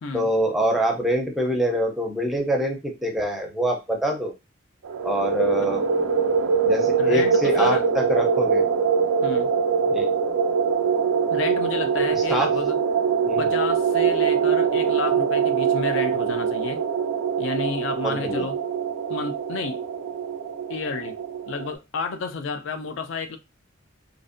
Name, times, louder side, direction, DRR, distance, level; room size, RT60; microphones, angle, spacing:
voice 1, 0.1-4.3 5.0-5.8 6.6-8.6 9.9-10.1 12.3-12.6 13.2-13.5 18.0-18.5, right 1 dB, ahead, 0.4 m, -25 dB
sound 1, 4.8-21.7, right 6 dB, 80° right, 0.4 m, -23 dB
voice 2, 7.0-7.9 9.2-9.5 11.3-12.8 13.4-16.8 17.4-18.6 19.1-19.9 20.7-21.2 21.5-23.4, left 4 dB, 65° left, 0.3 m, -31 dB
2.5 x 2.1 x 2.4 m
head